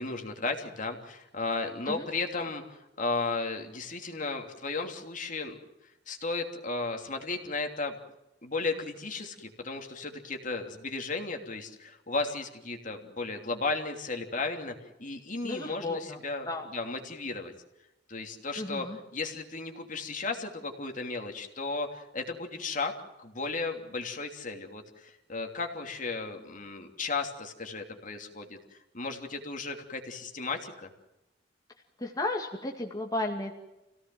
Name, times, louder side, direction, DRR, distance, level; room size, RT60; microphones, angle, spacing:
voice 1, 0.0-5.6 6.1-7.9 8.4-17.5 18.1-18.9 19.1-22.9 23.2-28.6 28.9-30.9, left 3 dB, 45° left, 4 dB, 3.0 m, -34 dB
voice 2, 15.4-16.2 16.5-16.7 18.6-19.0 32.0-33.5, left 2 dB, 20° left, 0 dB, 2.3 m, -33 dB
28.0 x 17.5 x 7.8 m, 0.95 s
head